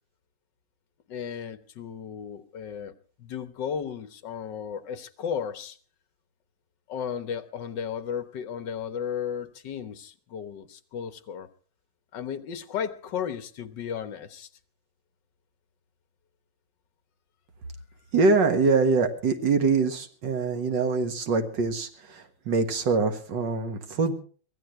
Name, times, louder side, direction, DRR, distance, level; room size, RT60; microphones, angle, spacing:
voice 1, 1.1-5.8 6.9-11.5 12.1-14.5, left 8 dB, 70° left, 11 dB, 1.7 m, -34 dB
voice 2, 18.1-24.2, right 4 dB, 70° right, 7 dB, 2.2 m, -24 dB
23.5 x 16.0 x 3.2 m, 0.40 s
omnidirectional pair, 2.1 m